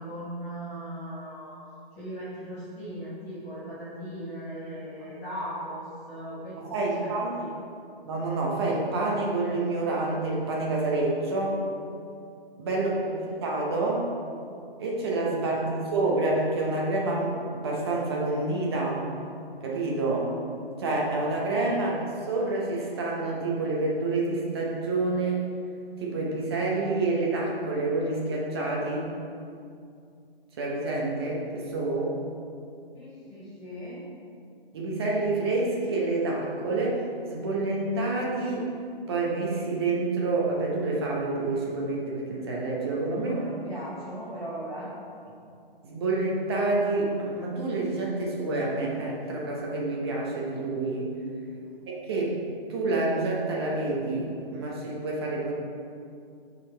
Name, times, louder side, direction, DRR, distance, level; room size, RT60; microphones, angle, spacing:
voice 1, 0.0-1.6 2.0-7.5 12.7-13.3 15.5-15.8 32.9-34.0 43.2-44.9 51.6-51.8, equal, 10° left, -12 dB, 0.6 m, -39 dB
voice 2, 6.6-7.3 8.1-11.6 12.6-14.1 14.8-19.0 19.6-20.3 20.8-22.0 22.3-25.4 26.0-29.1 30.6-32.1 34.7-37.0 37.3-38.7 39.1-43.4 45.8-51.1 51.9-52.4 52.7-55.5, right 2 dB, 25° right, -3 dB, 0.8 m, -28 dB
7.9 x 4.0 x 3.3 m, 2.4 s
hypercardioid pair, 160°, 29 cm